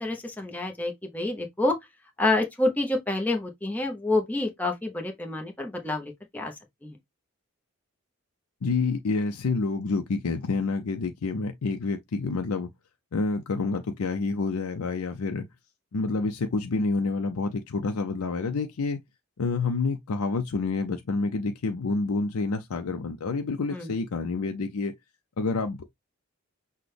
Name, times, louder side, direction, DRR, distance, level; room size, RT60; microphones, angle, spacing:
voice 1, 0.0-1.8 2.2-6.5 6.8-7.0 23.7-23.9, left 2 dB, 5° left, 0.7 m, -28 dB
voice 2, 8.6-12.7 13.1-15.5 15.9-19.0 19.4-24.9 25.4-25.9, left 3 dB, 90° left, 0.5 m, -28 dB
6.0 x 2.2 x 3.3 m
head